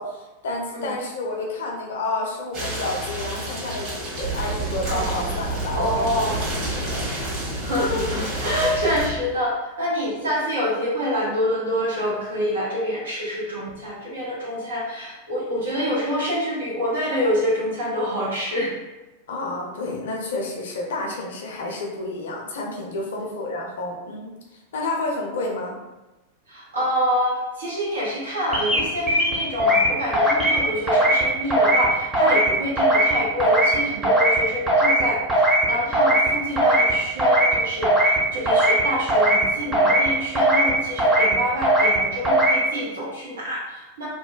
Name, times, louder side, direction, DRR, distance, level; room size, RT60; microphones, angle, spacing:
voice 1, 0.0-3.9 4.2-6.1 6.7-7.3 7.9-8.0 19.3-24.4 24.7-25.8, left 2 dB, 60° left, 0 dB, 0.5 m, -30 dB
sound 1, 2.5-9.1, equal, 35° right, 1.3 m, -31 dB
sound 2, 4.2-9.2, right 3 dB, 50° right, 1.4 m, -31 dB
voice 2, 5.7-6.4 7.6-18.7 23.2-23.4 26.5-44.1, equal, 65° right, -6 dB, 0.9 m, -26 dB
sound 3, 28.5-28.8 29.1-29.9 30.1-30.6 30.9-31.2 31.5-31.9 32.1-32.5 32.8-33.1 33.4-33.8 34.0-34.4 34.7-35.0 35.3-35.7 35.9-36.3 36.6-36.9 37.2-37.6 37.8-38.2 38.5-38.8 39.1-39.4 39.7-40.1 40.4-40.7 41.0-41.3 41.6-42.0 42.3-42.6, right 1 dB, 15° right, 0.7 m, -18 dB
2.9 x 2.1 x 2.3 m, 1.1 s
figure-of-eight pair, 90°, 0 cm